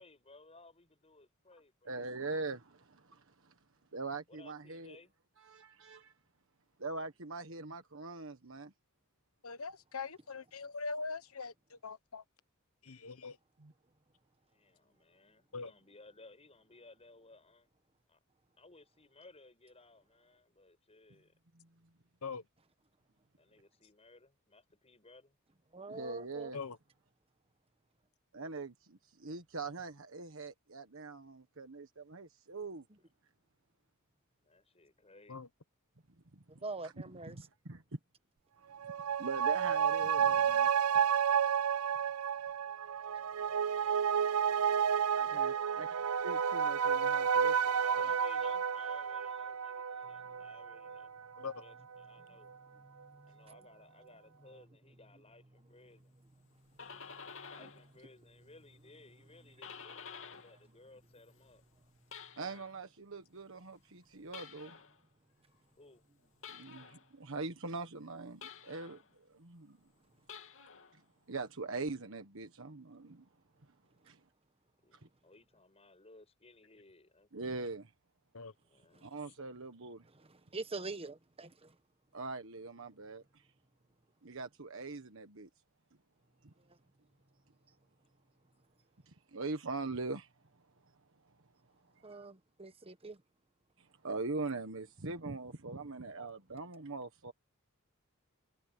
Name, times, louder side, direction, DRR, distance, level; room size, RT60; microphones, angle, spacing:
voice 1, 0.0-2.0 4.3-5.1 14.5-17.7 18.1-18.2 18.6-21.3 23.4-25.3 34.5-35.4 45.0-46.0 47.8-51.1 51.6-52.5 53.2-56.1 57.5-61.6 65.8-66.0 74.8-75.0 75.2-77.5 78.7-79.1, left 3 dB, 30° left, 6.7 m, -59 dB
voice 2, 1.8-3.5 3.9-5.0 5.4-6.1 6.8-8.7 13.6-13.7 21.5-21.7 25.9-26.6 28.3-32.8 36.8-36.9 37.3-37.8 38.8-38.9 39.2-40.7 43.5-43.6 45.2-45.9 46.2-48.2 57.6-57.7 62.4-64.8 66.5-69.8 70.9-71.0 71.3-73.2 74.0-74.2 74.9-75.0 77.3-77.9 79.0-80.0 82.1-83.4 84.2-85.5 86.4-86.5 89.1-90.3 92.0-92.2 93.8-97.3, right 3 dB, 65° right, 1.5 m, -42 dB
voice 3, 9.4-12.2 12.8-13.4 15.5-15.7 22.2-22.4 26.5-26.8 35.3-35.5 51.4-51.6 78.3-78.5, left 4 dB, 80° left, 1.2 m, -42 dB
voice 4, 25.7-26.5 36.6-37.4 50.3-50.5 52.8-53.5 57.4-57.5 80.2-81.7 92.0-93.2, right 3 dB, 25° right, 1.2 m, -45 dB
sound 1, 38.7-51.6 51.9-52.0, right 7 dB, 85° right, 0.5 m, -31 dB
sound 2, 56.5-57.9 58.2-60.6 60.9-62.8 64.3-65.0 66.4-67.1 68.4-69.1 70.2-70.9, left 6 dB, 65° left, 2.9 m, -51 dB
head